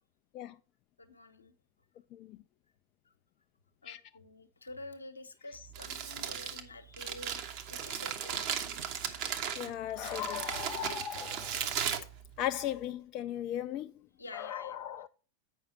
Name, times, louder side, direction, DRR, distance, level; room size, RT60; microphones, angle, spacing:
voice 1, 1.0-1.5 3.8-8.7 11.5-11.7 14.2-14.8, left 2 dB, 75° left, 1.0 m, -49 dB
voice 2, 2.1-2.4 3.8-4.0 9.6-11.6 12.4-13.9 14.3-15.1, left 11 dB, 40° left, 0.3 m, -37 dB
Crumpling crinkling, 5.5-12.9, right 8 dB, 45° right, 1.1 m, -37 dB
8.4 x 5.6 x 4.1 m
figure-of-eight pair, 90°, 0 cm